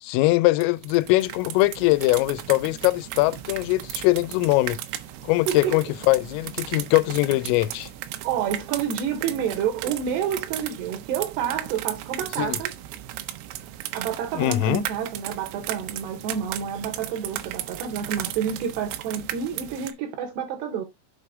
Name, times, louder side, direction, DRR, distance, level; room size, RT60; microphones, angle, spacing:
voice 1, 0.0-4.8 5.2-7.9 12.4-12.6 14.4-14.8, left 19 dB, 90° left, 3.2 m, -22 dB
sound 1, 0.6-19.9, right 13 dB, 85° right, 3.6 m, -36 dB
voice 2, 5.5-5.8 8.2-12.7 13.9-20.9, right 8 dB, 70° right, 2.9 m, -29 dB
7.8 x 5.5 x 3.6 m
omnidirectional pair, 5.7 m